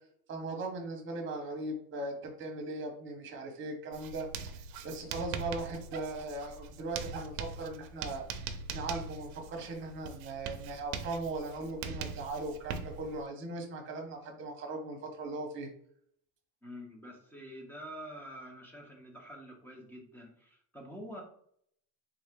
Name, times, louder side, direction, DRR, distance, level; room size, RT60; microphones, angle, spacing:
voice 1, 0.3-4.5 4.8-8.2 8.7-15.7, right 2 dB, 25° right, 2 dB, 1.0 m, -39 dB
Writing, 3.9-13.2, right 5 dB, 60° right, 0.6 m, -42 dB
voice 2, 16.6-21.2, equal, 5° left, 0 dB, 0.6 m, -47 dB
3.6 x 2.8 x 3.5 m, 0.65 s
supercardioid pair, 150°, 49 cm